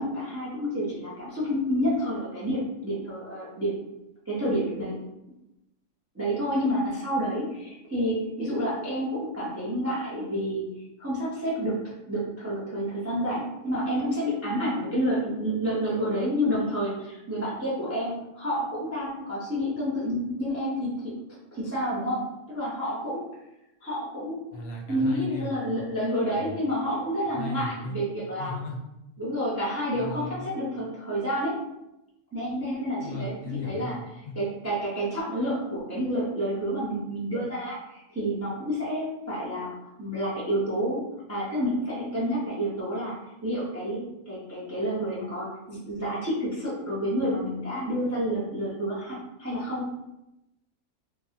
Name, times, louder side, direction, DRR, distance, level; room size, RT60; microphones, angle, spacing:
voice 1, 0.0-3.8 4.3-5.0 6.1-10.7 11.0-11.8 12.1-21.1 21.5-22.2 22.5-23.3 23.8-24.5 24.9-28.6 29.2-31.5 32.3-33.9 34.4-41.0 41.3-43.2 43.4-49.9, equal, 20° right, -7 dB, 0.4 m, -29 dB
voice 2, 24.5-25.8 26.4-26.6 27.3-28.0 28.4-28.8 29.9-30.5 33.0-34.4, left 1 dB, 80° left, 0 dB, 1.1 m, -36 dB
3.2 x 2.1 x 2.7 m, 0.91 s
omnidirectional pair, 1.5 m